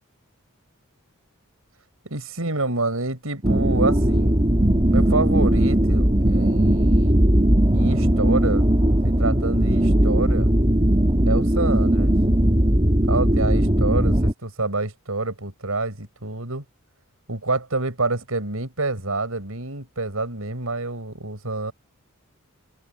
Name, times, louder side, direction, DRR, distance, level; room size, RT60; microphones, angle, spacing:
voice 1, 2.1-4.4 4.9-7.2 7.7-8.6 9.0-10.5 11.3-12.1 13.1-16.6 17.3-21.7, right 2 dB, 80° right, 5.3 m, -27 dB
sound 1, 3.4-14.3, right 1 dB, 25° right, 1.9 m, -18 dB
open air
head